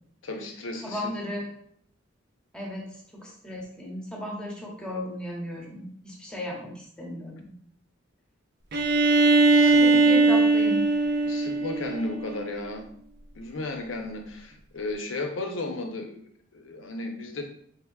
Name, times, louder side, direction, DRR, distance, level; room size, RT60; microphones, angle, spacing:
voice 1, 0.2-1.2 9.5-10.0 11.2-12.9 13.4-17.4, left 2 dB, 70° left, 4 dB, 0.6 m, -34 dB
voice 2, 0.8-1.5 2.5-7.3 9.5-10.9, left 1 dB, 5° left, -2 dB, 0.7 m, -35 dB
Bowed string instrument, 8.7-12.5, right 3 dB, 55° right, 0.5 m, -20 dB
3.4 x 3.2 x 2.2 m, 0.63 s
head